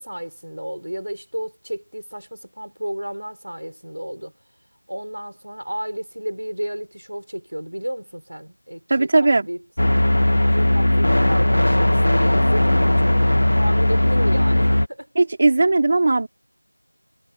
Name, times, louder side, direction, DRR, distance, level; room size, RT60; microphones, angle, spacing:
voice 1, 0.0-4.3 4.9-9.6 10.5-15.1, equal, 70° right, 6.6 m, -32 dB
voice 2, 8.9-9.5 15.1-16.3, right 2 dB, 20° right, 3.3 m, -17 dB
sound 1, 9.8-14.9, left 1 dB, 45° left, 2.0 m, -17 dB
figure-of-eight pair, 175°, 0 cm